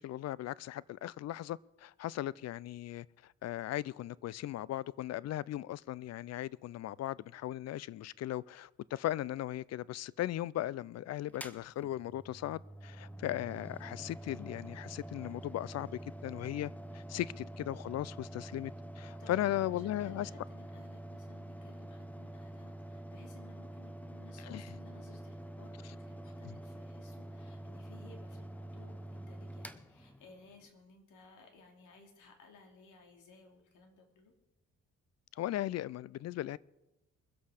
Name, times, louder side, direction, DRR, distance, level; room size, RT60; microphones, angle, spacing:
voice 1, 0.0-3.1 3.4-20.3 24.4-24.7 35.4-36.6, left 13 dB, 60° left, 0.4 m, -37 dB
Mechanical fan, 11.3-30.7, right 1 dB, 5° left, 0.9 m, -47 dB
voice 2, 19.2-34.3, left 4 dB, 80° left, 2.9 m, -59 dB
22.5 x 8.2 x 5.0 m
cardioid pair, 90°, 30 cm